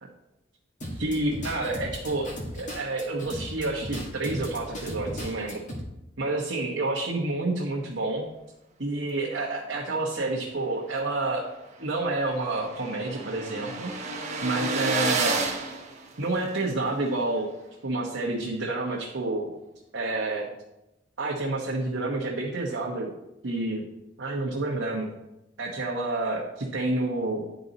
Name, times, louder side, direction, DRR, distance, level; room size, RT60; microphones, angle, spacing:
sound 1, 0.8-5.8, equal, 40° left, 1.5 m, -37 dB
voice 1, 0.9-5.6 6.2-8.2 8.8-11.5 11.8-13.9 14.4-15.4 16.2-17.5 17.8-19.5 19.9-20.5 21.2-23.1 23.4-23.8 24.2-25.1 25.6-27.4, right 2 dB, 75° right, -4 dB, 1.1 m, -29 dB
sound 2, 11.1-11.2 11.6-11.7 11.8-16.7, right 3 dB, 35° right, 1.2 m, -31 dB
10.5 x 4.0 x 4.1 m, 0.91 s
head